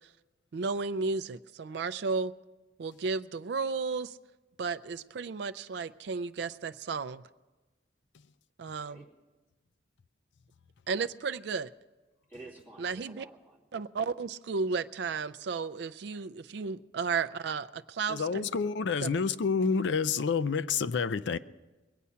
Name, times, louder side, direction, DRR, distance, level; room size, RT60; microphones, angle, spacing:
voice 1, 0.5-2.3 2.8-4.2 4.6-7.2 8.6-9.0 10.9-11.7 12.8-13.3 13.7-18.5 19.0-19.1, right 4 dB, 60° right, 0.4 m, -33 dB
voice 2, 12.3-13.6, right 2 dB, 10° left, 2.5 m, -50 dB
voice 3, 18.1-21.4, left 5 dB, 65° left, 0.4 m, -28 dB
21.5 x 8.4 x 5.6 m
head